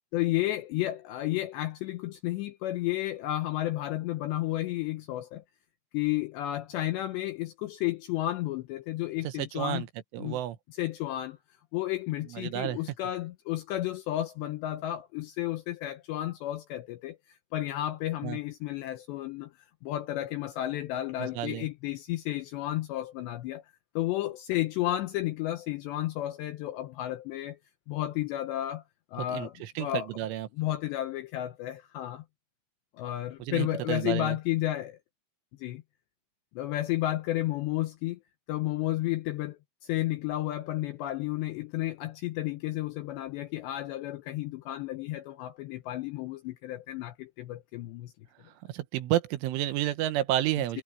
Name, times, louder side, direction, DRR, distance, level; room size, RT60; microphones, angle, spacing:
voice 1, 0.1-5.4 5.9-9.9 10.2-10.4 10.7-11.4 11.7-17.2 17.5-19.5 19.8-23.6 24.0-27.6 27.9-28.8 29.1-30.1 30.5-32.2 33.0-35.0 35.6-35.8 36.6-38.2 38.5-48.1, left 15 dB, 80° left, 2.6 m, -32 dB
voice 2, 9.2-9.9 10.1-10.6 12.3-12.8 18.2-18.4 21.4-21.7 29.3-29.5 29.8-30.5 33.5-34.3 48.7-50.8, right 13 dB, 75° right, 3.4 m, -30 dB
omnidirectional pair, 5.9 m